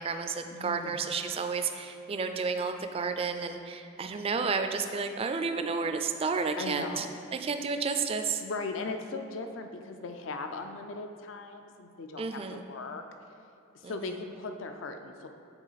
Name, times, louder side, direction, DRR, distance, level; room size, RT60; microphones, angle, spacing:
voice 1, 0.0-7.1 7.3-8.4 12.2-12.6 13.8-14.1, right 5 dB, 30° right, 7 dB, 0.3 m, -31 dB
voice 2, 0.5-1.0 6.6-7.1 8.4-13.0 13.8-15.3, left 3 dB, 70° left, 6 dB, 0.4 m, -38 dB
9.0 x 3.8 x 4.0 m, 2.5 s
head